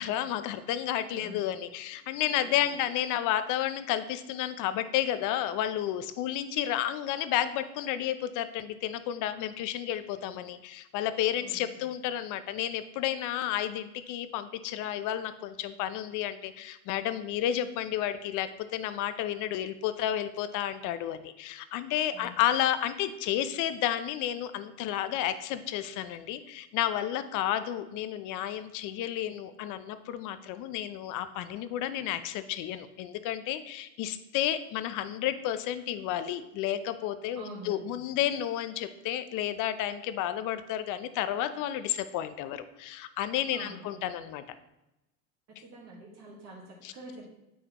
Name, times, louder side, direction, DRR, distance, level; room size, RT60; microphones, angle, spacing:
voice 1, 0.0-44.4 46.8-46.9, left 11 dB, 50° left, 12 dB, 0.6 m, -31 dB
voice 2, 2.3-2.8 10.4-10.5 11.4-11.6 22.1-22.4 37.4-38.0 43.5-43.9 45.6-47.3, right 1 dB, 40° right, -3 dB, 1.7 m, -46 dB
9.2 x 3.9 x 3.0 m, 0.91 s
hypercardioid pair, 100°, 41 cm